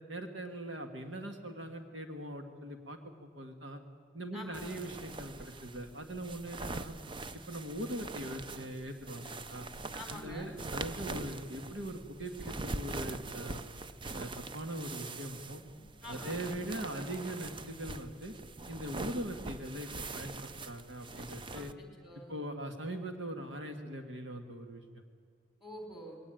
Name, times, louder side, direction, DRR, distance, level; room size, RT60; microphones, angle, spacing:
voice 1, 0.1-3.8 4.1-7.0 7.5-9.7 10.1-13.6 14.1-15.6 16.1-18.3 18.7-21.7 22.3-24.8, right 1 dB, 70° right, 5 dB, 1.9 m, -41 dB
voice 2, 4.3-4.8 9.9-10.5 16.0-16.5 21.5-22.3 25.6-26.2, equal, ahead, 3 dB, 4.3 m, -47 dB
sound 1, 4.5-21.7, right 3 dB, 25° right, 0.6 m, -43 dB
21.5 x 18.0 x 9.2 m, 2.1 s
head